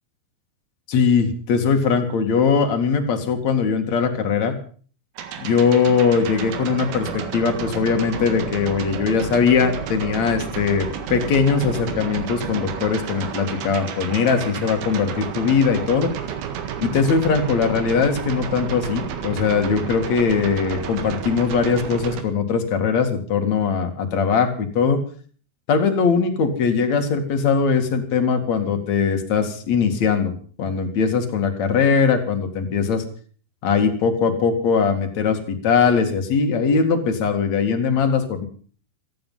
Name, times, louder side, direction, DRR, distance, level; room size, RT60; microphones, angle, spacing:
voice 1, 0.9-4.5 5.4-16.1 16.8-25.0 25.7-30.3 30.6-33.0 33.6-38.5, left 5 dB, 50° left, 5 dB, 2.4 m, -20 dB
sound 1, 5.2-22.2, right 8 dB, 70° right, 4.1 m, -31 dB
17.0 x 15.0 x 5.6 m, 0.44 s
omnidirectional pair, 5.7 m